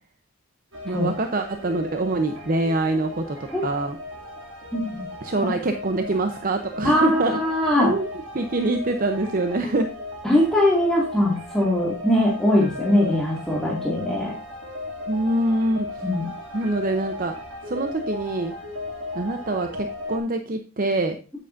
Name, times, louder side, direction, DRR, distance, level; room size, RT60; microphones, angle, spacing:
sound 1, 0.7-20.2, left 2 dB, 65° right, 2.5 m, -36 dB
voice 1, 0.8-3.4 3.6-4.0 5.2-7.4 7.8-8.1 8.3-9.9 15.1-15.9 16.5-17.4 17.7-18.5 19.1-21.2, right 2 dB, 40° right, 7 dB, 0.7 m, -24 dB
voice 2, 6.8-7.9 10.2-14.3 16.0-16.3, left 1 dB, 5° left, -3 dB, 2.2 m, -21 dB
9.3 x 8.6 x 2.6 m, 0.37 s
head